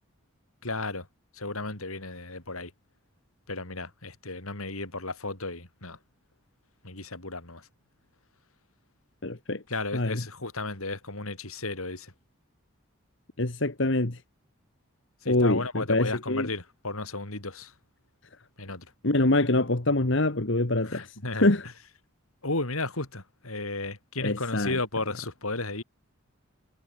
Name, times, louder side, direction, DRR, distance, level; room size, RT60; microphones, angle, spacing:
voice 1, 0.6-1.1 1.3-2.7 3.5-6.0 6.8-7.7 9.7-12.1 15.2-17.7 18.6-18.9 20.8-21.5 22.4-25.8, left 2 dB, 80° left, 5.6 m, -34 dB
voice 2, 9.2-9.6 9.9-10.2 13.4-14.2 15.3-16.5 19.0-21.6 24.2-24.8, left 2 dB, 55° left, 1.6 m, -25 dB
head